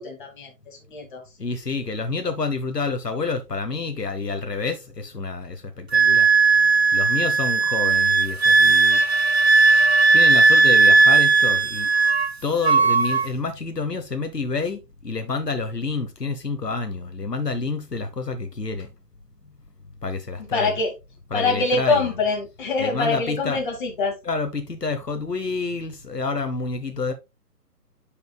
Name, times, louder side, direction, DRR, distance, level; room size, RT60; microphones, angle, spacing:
voice 1, 0.0-1.2 20.5-20.9 21.3-24.2, left 3 dB, 30° left, 2.4 m, -24 dB
voice 2, 1.4-6.3 6.5-6.6 6.9-9.0 10.1-11.9 12.4-18.9 20.0-20.8 21.3-22.2 22.8-23.6 24.2-27.1, left 4 dB, 80° left, 1.3 m, -28 dB
Wind instrument woodwind instrument, 5.9-12.3 12.6-13.3, right 4 dB, 45° right, 0.5 m, -17 dB
9.9 x 5.3 x 2.3 m
figure-of-eight pair, 145°, 47 cm